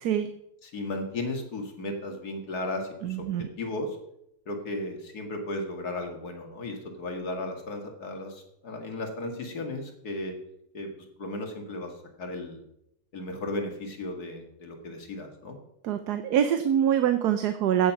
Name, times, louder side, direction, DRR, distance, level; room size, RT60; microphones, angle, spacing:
voice 1, 0.6-4.0 4.5-10.4 10.7-10.9 11.2-11.9 12.2-12.6 13.1-15.6, left 2 dB, 75° left, 4 dB, 2.5 m, -35 dB
voice 2, 3.0-3.5 15.8-17.9, right 9 dB, 85° right, 9 dB, 1.3 m, -25 dB
16.0 x 6.5 x 5.9 m, 0.78 s
omnidirectional pair, 1.7 m